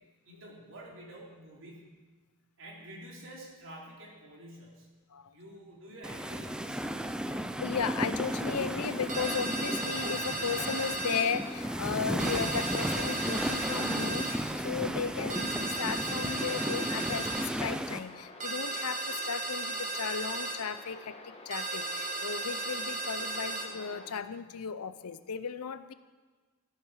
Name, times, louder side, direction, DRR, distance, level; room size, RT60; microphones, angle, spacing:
voice 1, 0.2-2.0 2.6-4.9 5.3-7.1, right 1 dB, 60° right, -3 dB, 3.3 m, -49 dB
sound 1, 6.0-18.0, right 1 dB, 5° right, 0.4 m, -34 dB
voice 2, 7.0-25.9, left 6 dB, 85° left, 14 dB, 0.6 m, -35 dB
sound 2, 8.1-24.1, left 2 dB, 25° left, 1.3 m, -50 dB
sound 3, 9.1-11.3 12.2-14.4 15.3-17.5 18.4-20.6 21.5-23.7, right 2 dB, 35° right, 1.6 m, -35 dB
14.0 x 11.5 x 4.9 m, 1.3 s
head